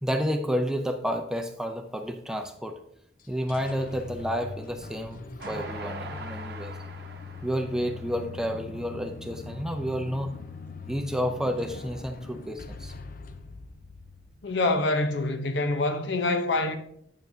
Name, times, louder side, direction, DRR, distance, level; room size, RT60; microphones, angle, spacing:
voice 1, 0.0-2.8 3.3-5.2 5.5-6.7 7.4-10.3 10.9-12.9, equal, 5° right, 0.5 m, -30 dB
sound 1, 3.2-14.8, left 4 dB, 45° left, 0.5 m, -42 dB
Train, 5.4-8.9 9.4-9.5 9.7-9.8, right 3 dB, 55° right, 0.8 m, -42 dB
voice 2, 14.4-16.8, left 2 dB, 70° left, 0.8 m, -25 dB
9.0 x 7.0 x 2.7 m
head